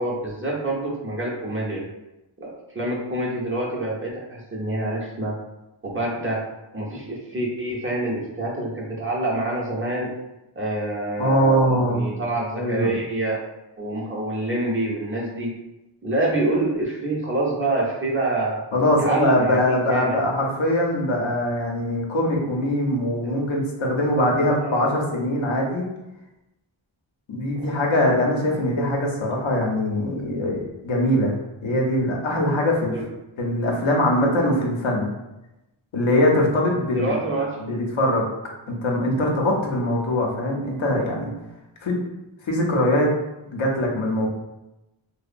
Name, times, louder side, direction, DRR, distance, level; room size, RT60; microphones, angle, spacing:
voice 1, 0.0-1.8 2.4-5.3 5.8-6.4 6.7-10.1 10.6-13.4 13.8-15.5 16.0-18.6 19.0-20.2 23.2-23.3 24.4-24.9 27.6-27.8 32.9-33.0 36.9-37.9, right 2 dB, 25° right, -4 dB, 0.7 m, -26 dB
voice 2, 11.2-12.2 12.6-12.9 18.7-25.9 27.3-31.3 31.6-32.9 33.4-35.1 35.9-37.2 37.6-38.2 38.7-41.3 41.8-42.0 42.5-43.1 43.5-44.3, left 1 dB, 70° left, -1 dB, 0.7 m, -22 dB
2.8 x 2.0 x 2.5 m, 0.96 s
wide cardioid pair, 50°, 48 cm